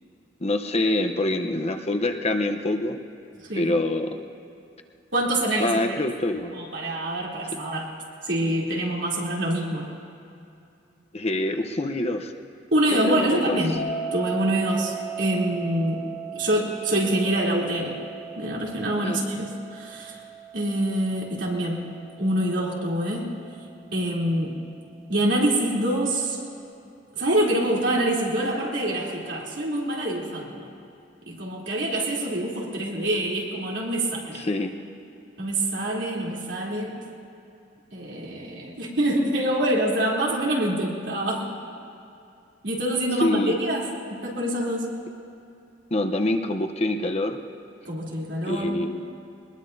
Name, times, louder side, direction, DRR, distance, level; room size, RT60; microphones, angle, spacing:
voice 1, 0.4-3.0 3.5-4.2 5.6-6.5 11.1-12.3 12.9-13.6 19.0-19.2 34.4-34.7 43.2-43.5 45.9-47.4 48.4-49.1, left 2 dB, 35° left, 5 dB, 0.8 m, -25 dB
voice 2, 5.1-5.8 6.5-7.9 8.2-9.9 12.7-13.8 14.1-18.0 18.3-20.2 20.5-21.9 22.2-23.3 23.9-24.6 25.1-26.4 27.1-30.7 31.3-34.5 35.4-37.0 37.9-41.5 42.6-44.9 47.8-48.8, right 1 dB, 85° right, -4 dB, 3.3 m, -25 dB
sound 1, 13.8-24.7, right 6 dB, 85° left, 2.7 m, -38 dB
23.0 x 20.5 x 2.7 m, 2.6 s
head